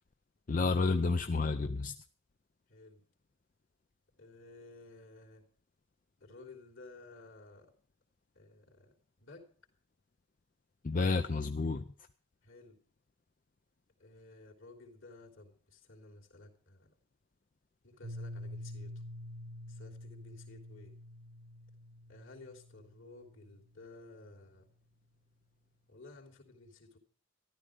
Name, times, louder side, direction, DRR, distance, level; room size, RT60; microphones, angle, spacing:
voice 1, 0.5-1.9 10.8-11.8, left 3 dB, 40° left, 8 dB, 0.5 m, -30 dB
voice 2, 2.7-3.0 4.2-5.4 6.2-7.7 8.3-9.5 12.4-12.8 14.0-16.9 17.8-18.9 19.7-21.0 22.1-24.7 25.9-27.0, left 3 dB, 65° left, 0 dB, 3.3 m, -54 dB
Piano, 18.0-23.6, left 1 dB, 75° right, 1.3 m, -47 dB
13.5 x 12.0 x 5.1 m, 0.43 s
head